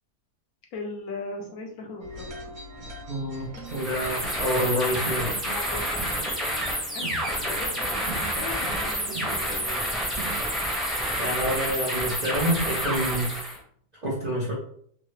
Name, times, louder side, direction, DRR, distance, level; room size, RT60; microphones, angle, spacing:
voice 1, 0.7-2.3 5.4-5.9 6.9-9.6, left 3 dB, 70° left, 2 dB, 1.0 m, -38 dB
sound 1, 2.0-7.1, left 1 dB, 50° right, 0.9 m, -44 dB
voice 2, 3.1-5.4 11.2-13.4 14.0-14.5, equal, 70° right, -4 dB, 0.4 m, -27 dB
sound 2, 3.7-13.6, equal, ahead, 0.5 m, -29 dB
sound 3, 4.9-10.4, right 4 dB, 90° right, 1.5 m, -41 dB
3.6 x 2.1 x 3.1 m, 0.62 s
omnidirectional pair, 1.8 m